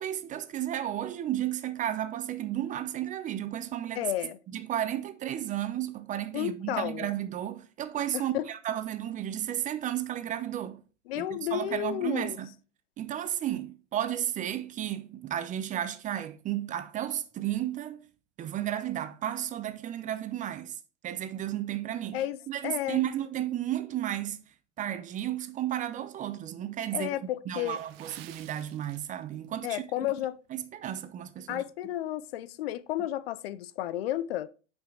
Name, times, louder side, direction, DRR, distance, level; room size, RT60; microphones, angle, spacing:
voice 1, 0.0-4.1 4.5-10.8 11.1-12.5 13.0-18.1 18.4-22.2 22.5-24.4 24.8-27.1 27.5-30.1 30.5-31.6, right 11 dB, 20° right, 0.6 m, -33 dB
voice 2, 4.0-4.4 6.3-7.1 8.1-8.5 11.1-12.4 22.1-22.4 22.6-23.0 26.9-27.8 29.6-30.3 31.5-34.5, left 13 dB, 55° left, 0.6 m, -32 dB
Water / Splash splatter, 27.7-29.5 29.8-30.1 30.6-30.8 31.3-31.4, right 13 dB, 55° right, 0.8 m, -51 dB
8.7 x 5.4 x 3.7 m
hypercardioid pair, 105°, 37 cm